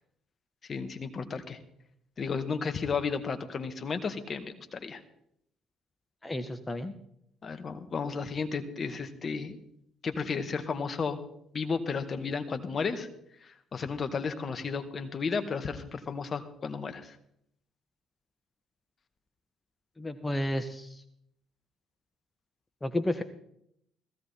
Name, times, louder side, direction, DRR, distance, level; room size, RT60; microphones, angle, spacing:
voice 1, 0.7-1.6 2.2-5.0 7.4-9.6 10.0-11.2 11.5-13.1 13.4-17.1, left 5 dB, 45° left, 8 dB, 1.8 m, -33 dB
voice 2, 6.2-6.9 20.0-21.0 22.8-23.2, left 1 dB, 20° left, 9 dB, 1.2 m, -32 dB
16.0 x 15.5 x 4.4 m, 0.73 s
hypercardioid pair, 50°, 0 cm